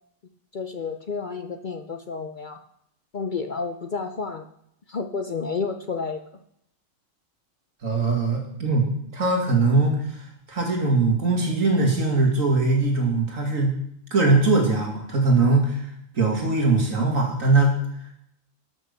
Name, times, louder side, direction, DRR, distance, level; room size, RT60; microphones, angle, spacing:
voice 1, 0.5-2.6 3.1-4.5 4.9-6.2, left 4 dB, 50° left, 7 dB, 0.7 m, -30 dB
voice 2, 7.8-8.9 9.1-10.2 10.5-13.8 14.1-15.8 16.1-17.8, right 3 dB, 75° right, 1 dB, 2.7 m, -21 dB
12.0 x 6.4 x 6.6 m, 0.74 s
omnidirectional pair, 1.4 m